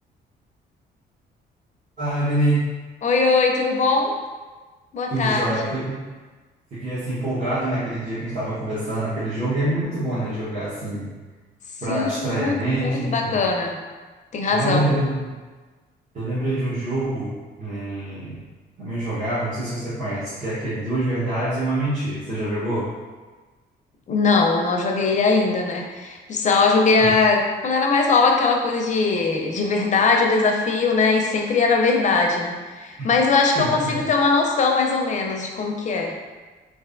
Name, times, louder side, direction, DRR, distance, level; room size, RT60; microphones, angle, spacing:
voice 1, 2.0-2.7 5.1-6.1 6.7-11.1 11.8-13.4 14.5-15.3 16.1-18.4 18.8-22.9 27.0-27.1 33.5-34.0, right 1 dB, 40° right, -13 dB, 1.1 m, -26 dB
voice 2, 3.0-4.2 4.9-5.7 11.9-13.8 14.3-14.9 24.1-36.1, left 4 dB, 40° left, 2 dB, 0.5 m, -20 dB
3.2 x 2.5 x 2.5 m, 1.3 s
cardioid pair, 100°, 19 cm